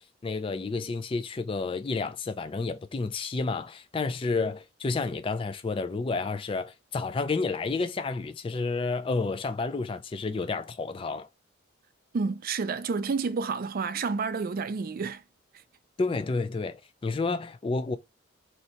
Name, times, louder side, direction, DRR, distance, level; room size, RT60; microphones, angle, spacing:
voice 1, 0.0-11.3 16.0-18.0, left 3 dB, 25° left, 0.4 m, -30 dB
voice 2, 12.1-15.2 15.5-15.6, right 4 dB, 50° right, 0.4 m, -30 dB
3.1 x 2.7 x 4.2 m
head